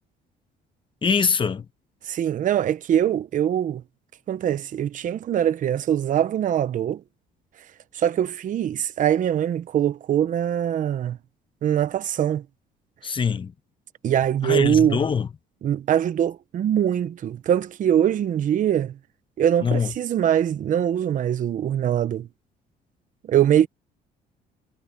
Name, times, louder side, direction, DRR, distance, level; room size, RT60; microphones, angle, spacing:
voice 1, 1.0-1.6 13.0-13.5 14.4-15.3 19.6-19.9, left 6 dB, 30° left, 1.3 m, -23 dB
voice 2, 2.0-3.8 4.3-7.0 7.9-11.2 11.6-12.4 14.0-15.0 15.6-18.9 19.4-22.3 23.3-23.7, right 10 dB, 50° right, 1.0 m, -22 dB
cardioid pair, 110°, 17 cm